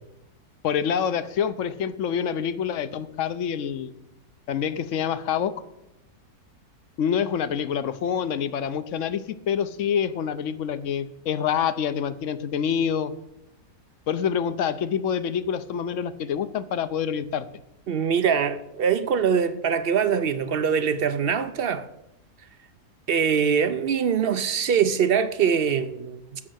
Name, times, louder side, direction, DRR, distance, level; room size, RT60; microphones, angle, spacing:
voice 1, 0.6-3.9 4.5-5.5 7.0-13.1 14.1-17.5, left 8 dB, 60° left, 1.0 m, -26 dB
voice 2, 17.9-21.9 23.1-26.4, right 7 dB, 65° right, 0.6 m, -23 dB
15.0 x 6.4 x 6.3 m
omnidirectional pair, 1.6 m